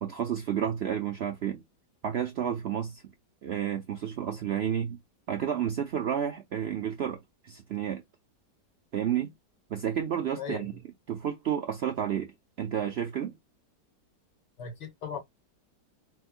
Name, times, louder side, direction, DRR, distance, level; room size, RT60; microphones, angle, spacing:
voice 1, 0.0-1.6 2.0-3.0 3.4-5.0 5.3-7.2 7.4-8.0 8.9-9.3 9.7-10.7 11.1-12.3 12.6-13.4, right 9 dB, 70° right, 0.6 m, -31 dB
voice 2, 10.4-10.8 14.6-15.2, left 6 dB, 80° left, 2.0 m, -38 dB
4.4 x 2.2 x 2.3 m
omnidirectional pair, 1.8 m